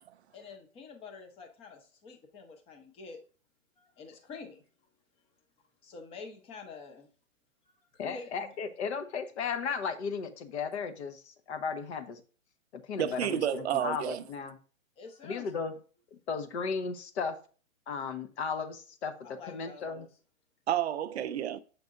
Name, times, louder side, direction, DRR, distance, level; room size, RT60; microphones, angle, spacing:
voice 1, 0.3-3.2 3.8-4.7 5.8-7.1 7.7-7.8 8.0-8.6 15.0-15.5 19.2-20.1, left 4 dB, 15° left, 0.7 m, -47 dB
voice 2, 8.0-12.2 12.7-14.5 15.2-15.7 16.1-17.3 17.9-19.1 19.5-20.1, left 5 dB, 55° left, 1.0 m, -35 dB
voice 3, 13.0-14.2 20.7-21.6, right 10 dB, 55° right, 0.5 m, -30 dB
7.3 x 5.2 x 2.5 m
hypercardioid pair, 140°, 41 cm